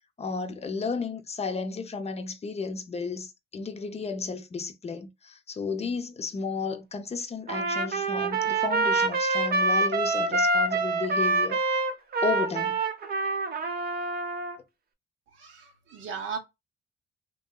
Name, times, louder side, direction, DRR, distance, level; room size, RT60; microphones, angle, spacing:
voice 1, 0.2-11.6 12.2-12.8, left 4 dB, 30° left, 0.6 m, -33 dB
Trumpet, 7.5-14.6, right 3 dB, 50° right, 0.8 m, -26 dB
voice 2, 15.3-16.4, right 6 dB, 75° right, 1.0 m, -37 dB
3.0 x 2.7 x 2.3 m
cardioid pair, 90°, 20 cm